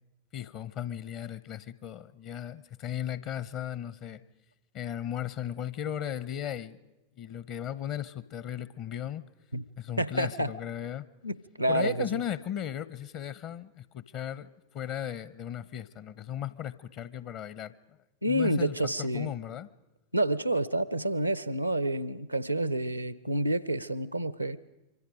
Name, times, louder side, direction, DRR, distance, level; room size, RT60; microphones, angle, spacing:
voice 1, 0.3-4.2 4.7-6.8 7.2-9.2 9.8-11.1 11.7-17.7 18.3-19.7, left 10 dB, 40° left, 0.7 m, -36 dB
voice 2, 10.0-10.5 11.2-12.2 18.2-19.3 20.1-24.6, right 1 dB, 90° right, 0.7 m, -29 dB
26.0 x 24.0 x 5.1 m
figure-of-eight pair, 90°, 0 cm